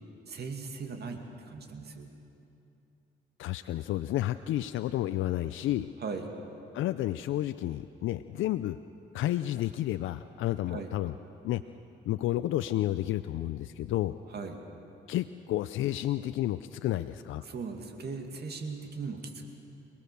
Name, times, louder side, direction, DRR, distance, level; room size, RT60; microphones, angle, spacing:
voice 1, 0.3-2.1 6.0-6.3 10.7-10.9 14.3-14.6 17.4-19.5, right 4 dB, 55° right, 4 dB, 2.4 m, -38 dB
voice 2, 3.4-5.9 6.7-8.8 9.1-11.1 11.4-11.6 12.0-14.1 15.1-17.4, left 14 dB, 80° left, 12 dB, 0.5 m, -31 dB
28.0 x 19.0 x 6.9 m, 2.7 s
cardioid pair, 90°, 20 cm